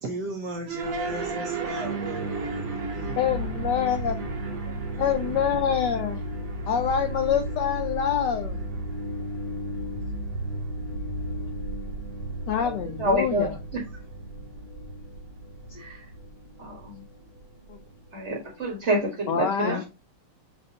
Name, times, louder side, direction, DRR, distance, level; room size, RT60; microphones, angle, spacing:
voice 1, 0.0-3.2 4.7-5.3, right 2 dB, 65° right, 1.1 m, -35 dB
sound 1, 0.7-19.0, right 2 dB, 80° right, 2.1 m, -34 dB
voice 2, 3.2-4.3 5.0-6.2 6.7-8.6 12.5-13.5 17.7-17.8 19.3-19.8, left 8 dB, 80° left, 0.9 m, -26 dB
voice 3, 13.0-13.5 13.7-13.8 15.7-16.0 16.6-17.0 18.1-19.9, right 1 dB, 40° right, 1.2 m, -27 dB
6.6 x 2.5 x 2.6 m
omnidirectional pair, 2.4 m